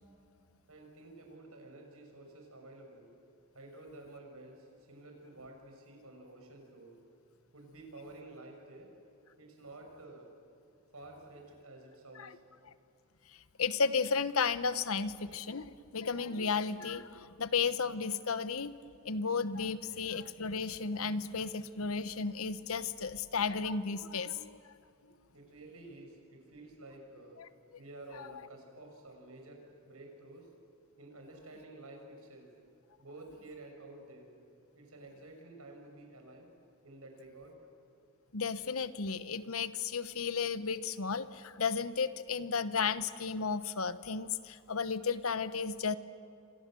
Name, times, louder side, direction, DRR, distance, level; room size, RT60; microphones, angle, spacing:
voice 1, 0.7-3.1 3.5-6.9 7.5-8.9 9.4-10.3 10.9-12.4 25.0-25.1 25.3-27.4 27.8-30.5 31.0-32.5 33.0-34.3 34.7-36.5 36.8-37.6, right 2 dB, 75° right, 2 dB, 6.5 m, -51 dB
voice 2, 13.6-18.7 19.0-24.6 27.4-27.5 28.2-28.3 38.3-46.0, left 5 dB, 70° left, 13 dB, 1.0 m, -33 dB
29.0 x 26.0 x 7.7 m, 2.6 s
head